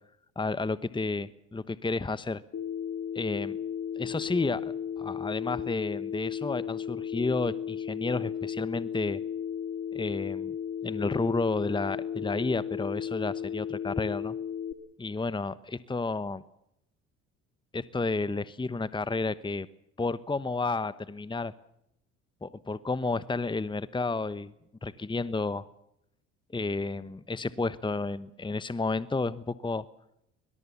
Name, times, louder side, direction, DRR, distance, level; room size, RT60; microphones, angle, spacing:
voice 1, 0.4-2.4 3.1-3.6 4.0-9.2 9.9-10.5 10.8-14.3 15.0-16.4 17.7-19.7 20.0-21.5 22.4-24.5 24.8-25.7 26.5-29.8, left 3 dB, 15° left, 16 dB, 1.1 m, -31 dB
Telephone, 2.5-14.7, left 8 dB, 50° left, 2.3 m, -35 dB
22.5 x 22.0 x 7.1 m, 0.79 s
supercardioid pair, 60°, 32 cm